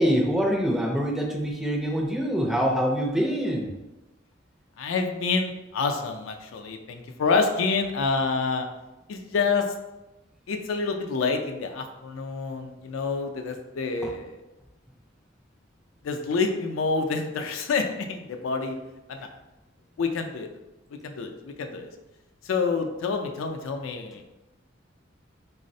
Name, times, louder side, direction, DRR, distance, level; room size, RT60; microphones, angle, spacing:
voice 1, 0.0-3.7 14.0-14.1, equal, ahead, -1 dB, 0.4 m, -25 dB
voice 2, 4.8-8.7 9.1-9.7 10.5-14.4 16.0-18.8 19.1-19.3 20.0-20.5 20.9-21.9 22.4-24.2, left 4 dB, 85° left, 5 dB, 0.4 m, -27 dB
3.9 x 2.0 x 2.6 m, 1.0 s
head